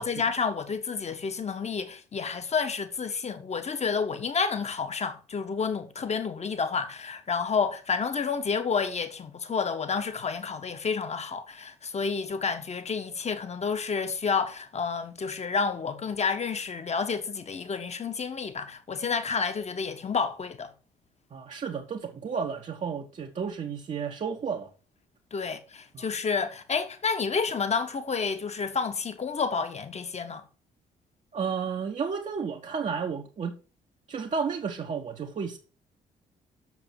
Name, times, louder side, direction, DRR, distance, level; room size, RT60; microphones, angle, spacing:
voice 1, 0.0-20.7 25.3-30.4, left 5 dB, 35° left, 1.4 m, -30 dB
voice 2, 21.3-24.7 25.9-26.0 31.3-33.6 34.1-35.6, right 6 dB, 35° right, 1.1 m, -32 dB
6.9 x 6.0 x 7.5 m
figure-of-eight pair, 45°, 20 cm